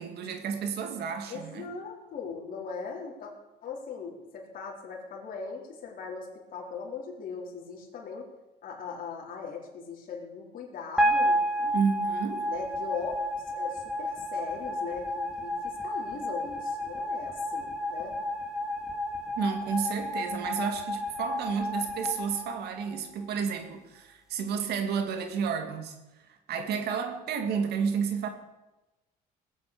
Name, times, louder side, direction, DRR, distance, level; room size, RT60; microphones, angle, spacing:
voice 1, 0.0-1.7 11.7-12.5 19.4-26.0 26.3-28.3, right 6 dB, 70° right, 7 dB, 2.4 m, -31 dB
voice 2, 1.3-3.3 3.6-8.3 8.6-11.7 12.5-13.2 13.4-18.2, left 5 dB, 55° left, -2 dB, 4.1 m, -39 dB
sound 1, 11.0-23.3, equal, 5° right, 2.5 m, -31 dB
19.0 x 8.7 x 6.9 m, 1.0 s
cardioid pair, 110°, 17 cm